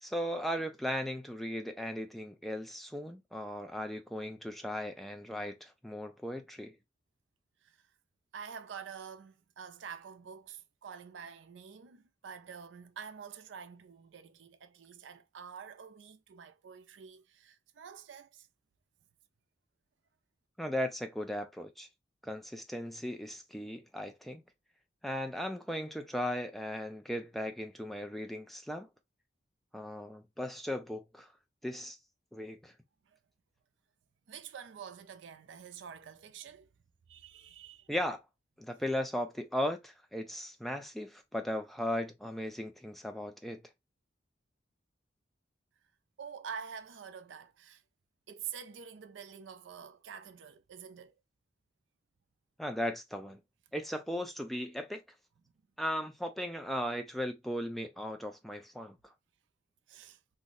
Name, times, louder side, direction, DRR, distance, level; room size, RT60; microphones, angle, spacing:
voice 1, 0.0-6.8 20.6-21.9 22.2-24.4 25.0-28.9 29.7-31.3 31.6-32.0 32.3-32.7 37.9-38.2 38.6-43.6 52.6-53.4 53.7-55.0 55.8-59.0, left 1 dB, ahead, 0.4 m, -37 dB
voice 2, 8.3-18.5 33.1-33.2 34.3-36.7 37.1-37.9 46.2-47.8 48.3-51.1 59.9-60.2, right 7 dB, 90° right, 0.4 m, -47 dB
2.6 x 2.0 x 3.7 m
head